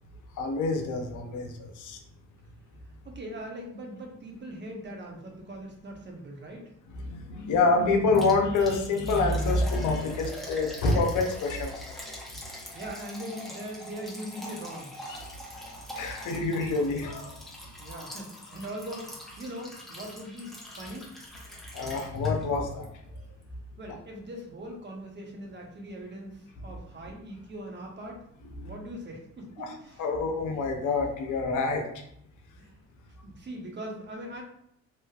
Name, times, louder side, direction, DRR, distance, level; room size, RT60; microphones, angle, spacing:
voice 1, 0.4-2.0 7.0-11.8 15.1-15.2 15.9-17.3 21.7-22.9 28.6-28.7 29.6-29.7 30.0-31.9, left 3 dB, 80° left, 3 dB, 0.7 m, -27 dB
voice 2, 3.0-6.7 12.7-14.9 17.8-21.1 23.8-28.2 28.6-30.2 32.6-32.7 33.2-34.4, right 1 dB, 35° right, 1 dB, 0.8 m, -41 dB
Liquid, 8.1-22.6 22.8-22.9 23.4-23.5, left 1 dB, ahead, 0.9 m, -43 dB
3.1 x 2.9 x 2.3 m, 0.74 s
cardioid pair, 90°, 30 cm